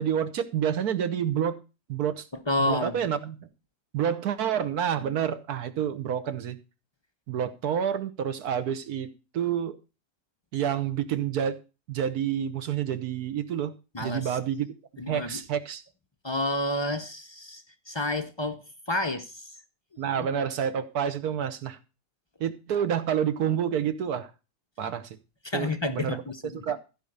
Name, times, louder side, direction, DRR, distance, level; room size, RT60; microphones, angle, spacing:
voice 1, 0.0-1.6 1.9-2.2 2.6-3.5 3.9-6.6 7.3-9.1 9.3-9.8 10.5-11.6 11.9-13.7 14.0-14.7 15.1-15.8 20.0-21.8 22.4-24.3 24.8-25.2 25.5-26.2 26.6-26.8, right 9 dB, 75° right, 1.5 m, -28 dB
voice 2, 2.5-3.1 5.0-5.1 13.9-14.4 15.0-15.4 16.2-19.6 20.2-20.3 25.4-26.6, left 1 dB, 40° left, 0.4 m, -30 dB
14.5 x 5.1 x 6.6 m
omnidirectional pair, 1.6 m